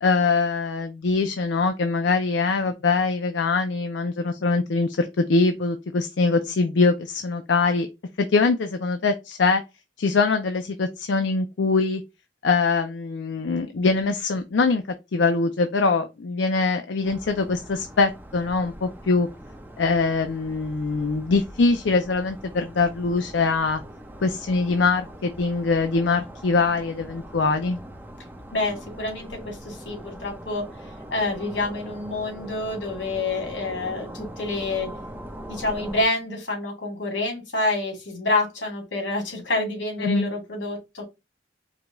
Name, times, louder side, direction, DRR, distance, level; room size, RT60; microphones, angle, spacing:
voice 1, 0.0-7.9 8.2-9.6 10.0-12.0 12.4-14.8 15.1-19.3 19.8-23.8 24.2-27.8 40.0-40.3, left 4 dB, 70° left, 0.5 m, -23 dB
sound 1, 17.0-36.1, right 1 dB, 10° right, 0.8 m, -41 dB
voice 2, 28.5-30.6 31.1-34.9 35.5-41.0, left 2 dB, 90° left, 2.3 m, -27 dB
4.9 x 2.3 x 3.8 m
head